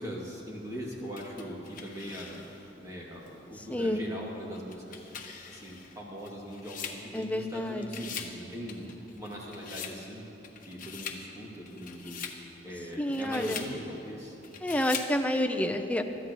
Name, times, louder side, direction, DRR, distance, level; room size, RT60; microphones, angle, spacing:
voice 1, 0.0-2.4 2.8-5.1 5.5-8.8 9.1-10.2 10.7-12.2 12.6-14.4, equal, 20° right, -4 dB, 2.5 m, -41 dB
sound 1, 1.2-2.7 3.3-3.4 4.5-7.5 7.8-8.4 8.7-10.0 10.4-11.2 11.7-12.4 12.9-13.7 14.4-15.1, left 7 dB, 50° left, 1.1 m, -42 dB
voice 2, 3.7-4.0 7.1-8.0 13.0-13.6 14.6-16.0, left 1 dB, 10° left, 4 dB, 0.7 m, -29 dB
22.5 x 13.5 x 3.1 m, 3.0 s
head